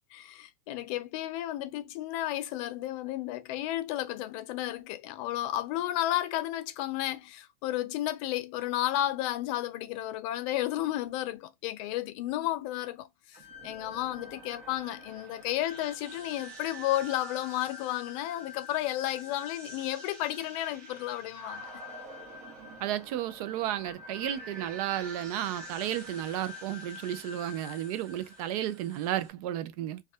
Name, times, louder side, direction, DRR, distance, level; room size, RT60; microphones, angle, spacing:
voice 1, 0.1-21.7, left 14 dB, 50° left, 0.5 m, -32 dB
sound 1, 13.3-29.3, left 1 dB, 40° right, 0.9 m, -46 dB
voice 2, 22.8-30.0, right 12 dB, 60° right, 0.4 m, -33 dB
2.5 x 2.3 x 2.3 m
supercardioid pair, 135°, 21 cm